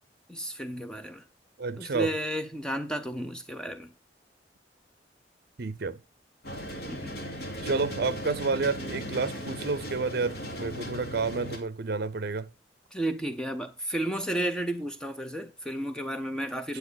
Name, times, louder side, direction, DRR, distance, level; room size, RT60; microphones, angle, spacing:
voice 1, 0.3-1.2 1.8-3.9 6.9-7.1 12.9-16.8, right 1 dB, 5° left, 0.6 m, -32 dB
voice 2, 1.6-2.1 5.6-6.0 7.6-12.5 16.7-16.8, right 4 dB, 60° right, 0.6 m, -30 dB
sound 1, 6.4-11.6, equal, 65° left, 2.6 m, -37 dB
9.6 x 7.9 x 4.0 m
head